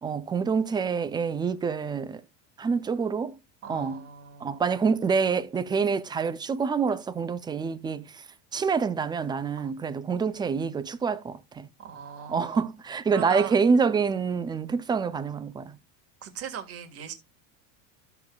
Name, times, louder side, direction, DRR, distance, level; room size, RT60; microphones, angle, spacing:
voice 1, 0.0-2.2 2.6-3.4 3.7-4.0 4.4-8.2 8.5-11.7 12.3-15.8, right 5 dB, 10° right, 0.4 m, -27 dB
voice 2, 3.6-4.6 9.6-9.7 11.8-12.6 13.1-13.6 16.2-17.1, right 8 dB, 40° right, 1.8 m, -39 dB
13.0 x 7.1 x 2.3 m
supercardioid pair, 140°, 38 cm